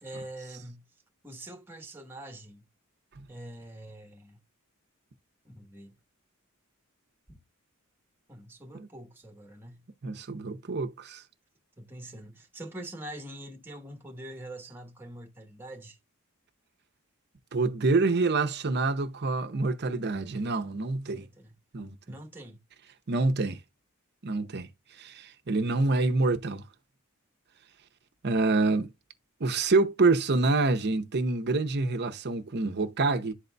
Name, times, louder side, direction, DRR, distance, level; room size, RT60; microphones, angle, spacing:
voice 1, 0.0-0.8 1.2-2.7 3.3-4.4 5.4-6.0 7.3-7.4 8.3-9.8 11.8-16.0 21.1-21.6 22.1-22.6, right 1 dB, 10° right, 1.2 m, -44 dB
voice 2, 10.0-11.2 17.5-21.3 21.7-22.0 23.1-23.6 24.2-24.7 25.0-26.6 28.2-28.9 29.4-33.3, right 3 dB, 50° right, 0.8 m, -26 dB
11.5 x 3.9 x 2.2 m
head